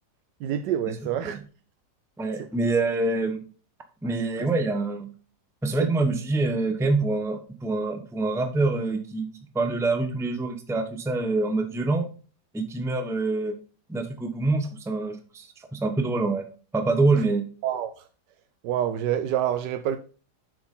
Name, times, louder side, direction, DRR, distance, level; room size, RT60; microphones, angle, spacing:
voice 1, 0.4-1.4 17.6-17.9 18.6-20.0, right 10 dB, 90° right, 1.3 m, -26 dB
voice 2, 2.2-3.4 4.0-5.1 5.6-9.3 9.5-12.1 12.5-13.6 13.9-16.5 16.7-17.5, right 3 dB, ahead, 0.7 m, -25 dB
7.9 x 6.4 x 3.8 m
omnidirectional pair, 1.8 m